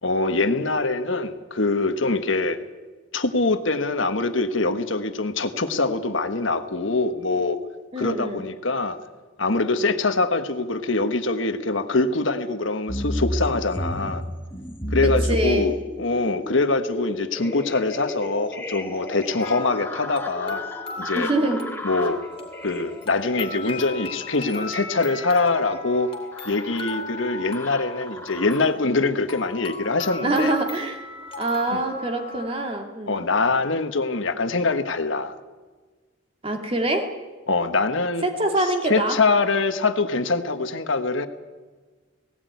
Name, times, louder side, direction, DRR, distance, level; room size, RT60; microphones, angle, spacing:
voice 1, 0.0-2.6 3.1-7.6 8.0-9.0 9.4-14.2 14.9-20.6 21.0-21.3 21.8-22.2 22.6-26.1 26.4-30.5 31.7-31.8 33.1-35.3 37.5-38.3 38.9-41.3, left 3 dB, 70° left, 9 dB, 1.4 m, -24 dB
voice 2, 7.9-8.4 15.0-15.7 21.1-21.6 30.2-31.0 31.4-33.2 36.4-37.1 38.2-39.2, right 1 dB, 30° right, 3 dB, 2.5 m, -24 dB
sound 1, 12.9-28.8 29.4-30.1 30.6-30.7, left 1 dB, 10° left, 1.9 m, -33 dB
sound 2, 19.4-32.5, left 2 dB, 30° left, 3.0 m, -37 dB
17.5 x 17.0 x 9.4 m, 1.4 s
head